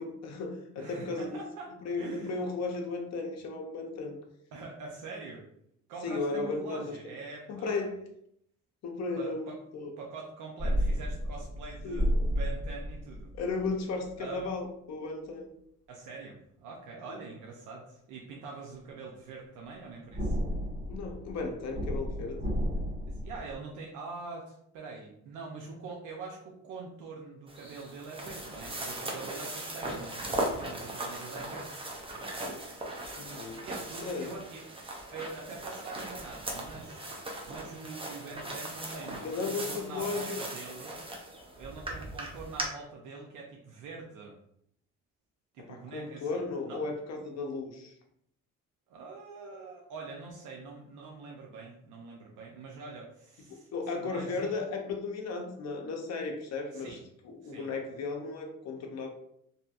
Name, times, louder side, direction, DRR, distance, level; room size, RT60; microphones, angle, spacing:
voice 1, 0.0-1.4 1.8-4.2 6.0-7.0 7.5-8.0 8.8-9.9 11.8-12.1 13.4-15.5 20.9-22.4 33.2-33.6 34.0-34.3 39.2-40.4 45.6-47.9 53.7-57.0 57.2-59.1, left 3 dB, 60° left, 3 dB, 0.7 m, -35 dB
voice 2, 0.7-2.4 4.5-5.4 5.9-7.9 9.1-9.6 10.0-13.3 14.2-14.5 15.9-20.4 23.0-31.7 33.6-34.6 35.1-37.1 37.5-41.0 41.6-44.3 45.5-46.8 48.9-53.7 54.0-54.5 56.7-57.0 57.4-57.7, right 4 dB, 85° right, -1 dB, 0.5 m, -44 dB
sound 1, 10.6-13.7 14.0-14.1 20.1-23.5, equal, 35° right, 1.4 m, -32 dB
sound 2, 27.5-42.6, right 1 dB, 20° right, 0.6 m, -39 dB
2.8 x 2.5 x 2.3 m, 0.72 s
cardioid pair, 90°, 30 cm